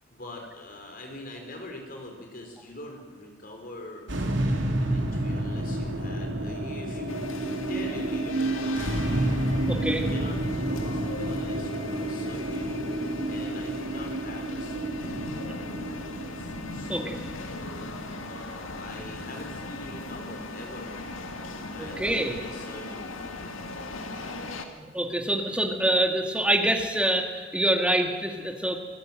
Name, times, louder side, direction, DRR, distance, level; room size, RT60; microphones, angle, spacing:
voice 1, 0.1-7.2 7.7-12.8 13.3-17.2 18.2-21.1 21.7-23.5, left 1 dB, 45° left, 2 dB, 4.8 m, -43 dB
sound 1, 4.1-20.5, right 1 dB, 65° right, 2.9 m, -30 dB
sound 2, 7.1-24.7, left 2 dB, 85° left, 2.0 m, -39 dB
voice 2, 9.7-10.0 16.9-17.2 21.8-22.3 24.6-28.8, right 1 dB, 5° right, 3 dB, 2.1 m, -26 dB
26.0 x 15.0 x 7.8 m, 1.6 s
head